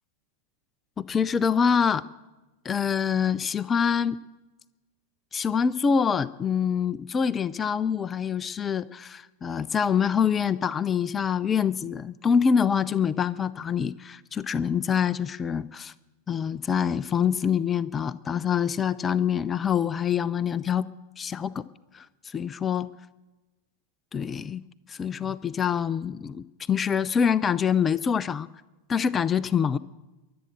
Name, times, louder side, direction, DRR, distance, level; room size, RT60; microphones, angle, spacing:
voice 1, 1.0-2.0 2.6-4.2 5.3-15.9 16.3-20.9 21.2-21.6 21.9-22.9 24.1-24.6 24.9-28.5 28.9-29.8, left 7 dB, 20° left, 18 dB, 0.4 m, -25 dB
23.0 x 8.7 x 6.5 m, 1.1 s
figure-of-eight pair, 90°, 0 cm